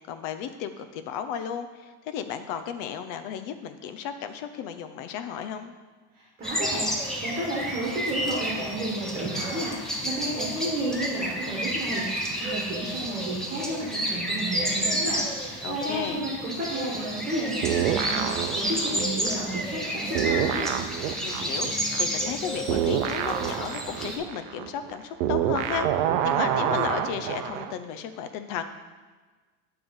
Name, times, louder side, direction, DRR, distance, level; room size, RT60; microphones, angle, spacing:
voice 1, 0.1-5.7 15.6-16.2 21.2-28.6, left 8 dB, 60° left, 9 dB, 0.7 m, -34 dB
voice 2, 6.1-20.7, right 1 dB, 25° right, -5 dB, 1.6 m, -32 dB
sound 1, 6.4-24.2, equal, ahead, 0.7 m, -31 dB
sound 2, 17.6-19.9 20.1-27.7, right 10 dB, 90° right, 0.6 m, -28 dB
9.2 x 3.4 x 5.4 m, 1.4 s
cardioid pair, 150°, 36 cm